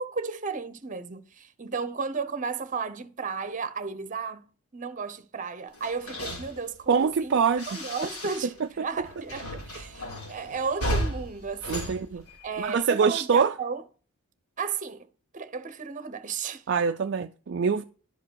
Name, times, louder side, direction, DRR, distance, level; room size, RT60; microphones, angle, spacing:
voice 1, 0.0-4.5 4.7-7.4 7.7-12.0 12.4-13.8 14.6-15.0 15.3-16.6, right 5 dB, 35° right, 0.9 m, -34 dB
sound 1, 5.7-8.7 8.9-12.8, equal, 80° left, 4.3 m, -35 dB
voice 2, 6.9-7.8 8.8-8.9 11.7-12.2 12.6-13.5 16.7-17.8, right 6 dB, 50° right, 0.4 m, -24 dB
11.5 x 4.8 x 6.3 m
head